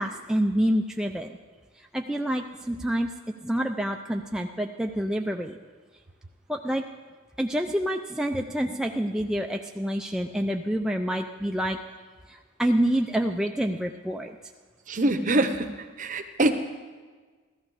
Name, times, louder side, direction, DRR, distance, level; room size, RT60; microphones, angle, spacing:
voice 1, 0.0-1.3 1.8-5.6 6.5-6.8 7.4-11.8 12.3-14.4, equal, 5° right, 2 dB, 0.4 m, -27 dB
voice 2, 14.9-16.5, right 2 dB, 40° right, 8 dB, 0.8 m, -24 dB
14.5 x 14.0 x 4.9 m, 1.4 s
head